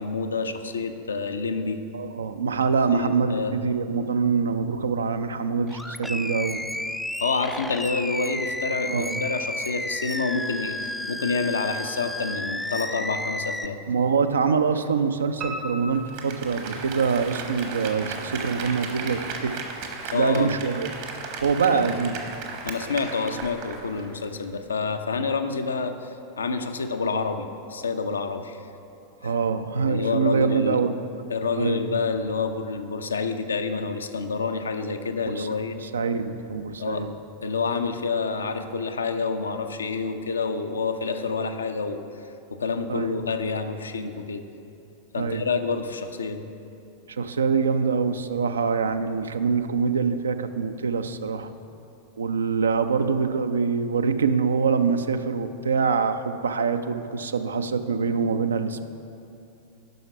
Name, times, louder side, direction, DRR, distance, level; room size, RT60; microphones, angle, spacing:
voice 1, 0.0-1.8 2.9-3.5 7.2-13.8 20.1-20.5 21.7-21.9 22.6-28.6 29.2-29.3 29.9-30.8 31.3-35.8 36.8-37.1 37.4-42.1 42.5-44.4 45.1-46.5, left 4 dB, 70° left, 7 dB, 0.5 m, -28 dB
voice 2, 1.9-6.6 8.9-9.2 13.9-19.5 20.0-20.9 21.4-22.2 29.2-31.2 31.6-31.8 35.3-35.5 35.8-37.1 42.9-43.1 45.1-45.4 47.1-51.5 52.2-58.8, right 5 dB, 70° right, 10 dB, 0.4 m, -24 dB
Animal, 5.7-13.7, left 1 dB, 5° left, 0.3 m, -32 dB
Piano, 15.4-17.3 17.7-18.6 18.9-19.0 19.5-19.6 19.8-19.9, right 1 dB, 35° right, 0.7 m, -38 dB
Applause, 15.9-24.1 24.4-24.5, right 5 dB, 50° right, 1.1 m, -36 dB
9.1 x 5.8 x 5.8 m, 2.7 s
figure-of-eight pair, 90°, 0 cm